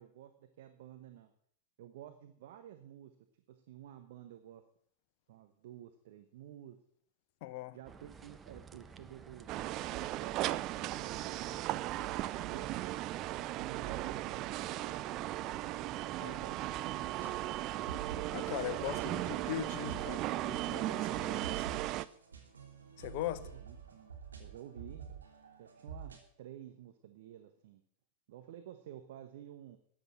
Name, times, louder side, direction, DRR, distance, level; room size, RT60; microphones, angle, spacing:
voice 1, 0.0-1.3 1.8-3.1 3.5-4.6 5.3-6.8 7.7-12.7 13.3-15.1 16.3-17.8 23.4-25.1 25.6-27.8 28.3-29.8, right 11 dB, 55° right, 1.1 m, -52 dB
voice 2, 7.4-7.8 16.2-16.4 18.3-21.7 23.0-23.5, left 13 dB, 45° left, 0.9 m, -40 dB
sound 1, 7.8-20.8, right 6 dB, 20° right, 0.9 m, -53 dB
sound 2, 9.5-22.0, right 16 dB, 40° right, 0.5 m, -37 dB
sound 3, 17.0-26.2, right 6 dB, 70° right, 3.0 m, -49 dB
13.5 x 9.5 x 7.6 m
figure-of-eight pair, 90°, 0 cm